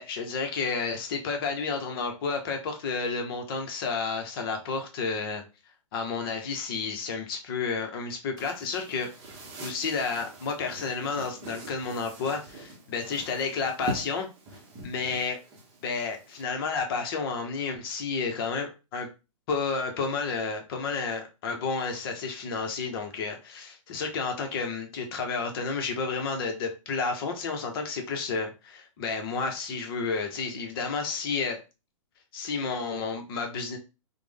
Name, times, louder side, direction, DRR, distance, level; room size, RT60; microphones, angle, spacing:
voice 1, 0.0-5.4 5.9-9.1 9.6-14.3 14.8-15.4 15.8-19.1 19.5-31.6 32.3-33.8, left 4 dB, 45° left, 4 dB, 0.8 m, -31 dB
sound 1, 8.4-16.4, right 2 dB, 25° right, 0.8 m, -43 dB
3.3 x 2.1 x 3.4 m, 0.29 s
hypercardioid pair, 150°, 17 cm